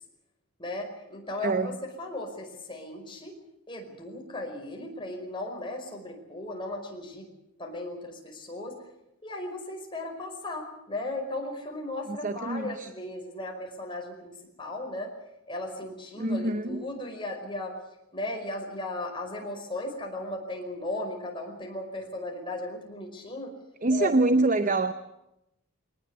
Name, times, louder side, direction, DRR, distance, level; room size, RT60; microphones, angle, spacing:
voice 1, 0.6-3.4 3.7-7.2 7.6-8.8 9.2-15.1 15.5-17.8 18.1-23.5 23.9-24.1, left 1 dB, 20° left, 1 dB, 5.1 m, -36 dB
voice 2, 1.4-1.8 12.1-12.9 16.2-16.9 23.8-24.9, right 2 dB, 35° right, 11 dB, 0.8 m, -25 dB
21.5 x 19.5 x 8.2 m, 0.87 s
head